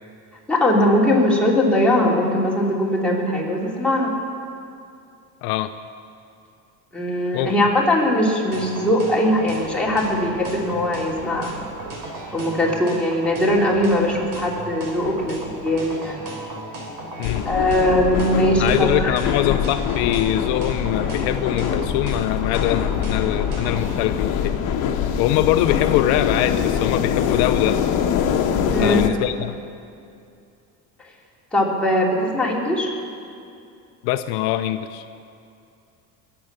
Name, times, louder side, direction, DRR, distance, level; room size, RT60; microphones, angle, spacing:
voice 1, 0.5-4.1 6.9-11.5 12.3-16.2 17.4-19.1 28.7-29.0 31.5-32.9, left 1 dB, 5° left, -4 dB, 3.1 m, -20 dB
sound 1, 8.5-23.9, right 2 dB, 55° right, 3.6 m, -35 dB
sound 2, 17.2-29.1, left 8 dB, 55° left, 1.2 m, -23 dB
voice 2, 18.6-24.6 25.2-27.8 28.8-29.6 34.0-35.0, left 13 dB, 75° left, 10 dB, 0.7 m, -23 dB
21.5 x 7.9 x 6.8 m, 2.6 s
cardioid pair, 120°, 37 cm